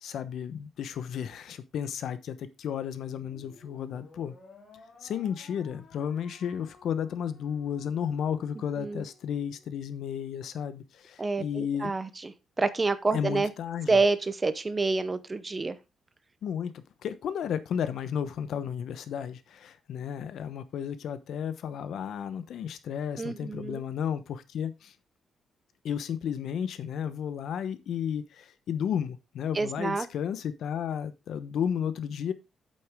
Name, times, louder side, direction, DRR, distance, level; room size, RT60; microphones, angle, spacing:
voice 1, 0.0-4.3 5.0-11.9 13.1-14.0 16.4-24.9 25.8-32.3, left 8 dB, 65° left, 13 dB, 1.0 m, -33 dB
sound 1, 3.2-9.7, left 3 dB, 30° left, 3.3 m, -55 dB
voice 2, 11.2-13.5 13.9-15.7 23.2-23.8 29.5-30.1, right 3 dB, 20° right, 13 dB, 0.7 m, -28 dB
8.7 x 7.8 x 3.6 m, 0.25 s
cardioid pair, 170°, 0 cm